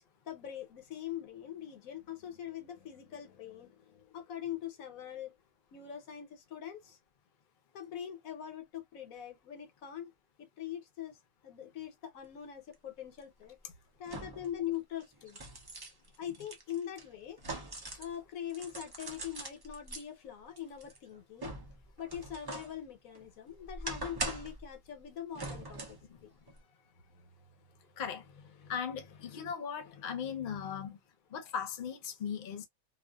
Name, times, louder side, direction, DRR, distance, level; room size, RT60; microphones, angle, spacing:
voice 1, 0.3-5.3 5.7-7.0 7.7-10.1 10.4-11.2 11.4-13.6 14.0-15.4 16.2-17.4 18.0-21.5 22.0-26.0 26.2-26.3 28.6-28.7 29.3-29.5 29.8-30.9, left 10 dB, 85° left, 1.2 m, -43 dB
sound 1, 12.7-12.8 14.1-14.6 15.0-18.2 18.5-20.0 20.6-22.8 23.2-24.6 25.3-26.1 26.5-26.6, right 2 dB, 40° right, 0.3 m, -42 dB
voice 2, 28.7-31.0 31.3-32.7, left 7 dB, 50° left, 0.7 m, -38 dB
2.5 x 2.4 x 2.2 m
omnidirectional pair, 1.4 m